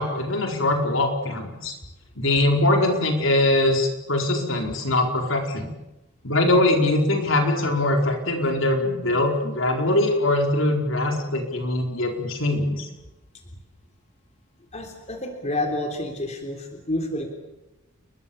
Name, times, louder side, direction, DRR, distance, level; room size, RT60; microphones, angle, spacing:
voice 1, 0.0-1.7 2.2-5.7 6.2-12.9, left 1 dB, 65° left, 3 dB, 4.7 m, -22 dB
voice 2, 14.7-17.3, left 1 dB, 35° left, 4 dB, 3.5 m, -29 dB
29.5 x 22.5 x 7.2 m, 0.99 s
head